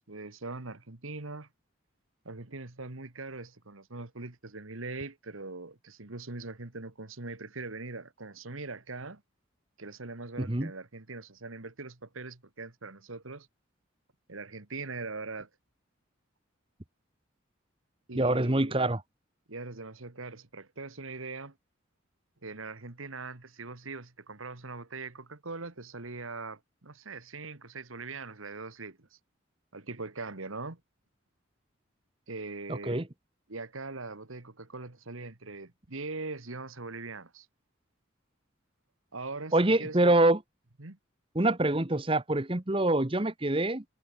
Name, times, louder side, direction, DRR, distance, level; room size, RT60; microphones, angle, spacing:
voice 1, 0.0-1.5 2.3-9.2 9.8-13.5 14.3-15.5 18.1-18.9 19.5-21.6 22.4-29.1 29.7-30.8 32.3-33.0 33.5-37.5 39.1-40.1 40.8-41.0, right 3 dB, 85° right, 1.9 m, -41 dB
voice 2, 18.1-19.0 32.7-33.0 39.5-40.4 41.3-43.8, right 2 dB, 25° right, 1.1 m, -25 dB
head